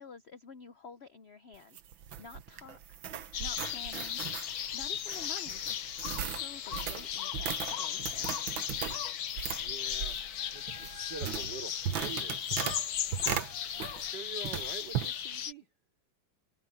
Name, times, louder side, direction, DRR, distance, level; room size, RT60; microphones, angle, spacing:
voice 1, 0.0-1.8 2.2-3.0 3.4-4.2 4.7-5.9 6.1-8.4, left 5 dB, 85° left, 0.5 m, -50 dB
sound 1, 1.5-14.2 14.4-15.1, right 9 dB, 80° right, 1.9 m, -38 dB
sound 2, 3.3-15.5, left 10 dB, 60° left, 1.2 m, -36 dB
voice 2, 9.6-10.2 10.5-12.4 13.7-15.7, right 5 dB, 60° right, 5.3 m, -45 dB
omnidirectional pair, 2.1 m